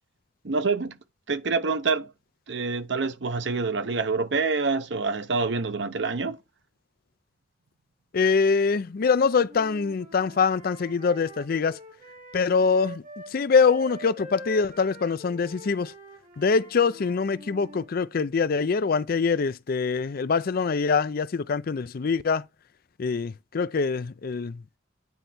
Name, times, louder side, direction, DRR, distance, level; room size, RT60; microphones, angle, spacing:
voice 1, 0.4-1.0 1.3-2.1 2.5-6.4, right 4 dB, 70° right, 0.8 m, -26 dB
voice 2, 8.1-11.8 12.3-15.9 16.4-22.5 23.0-24.6, left 5 dB, 55° left, 0.4 m, -24 dB
Wind instrument woodwind instrument, 9.4-13.3 13.6-17.9, right 1 dB, 50° right, 2.0 m, -44 dB
9.6 x 4.2 x 4.5 m
head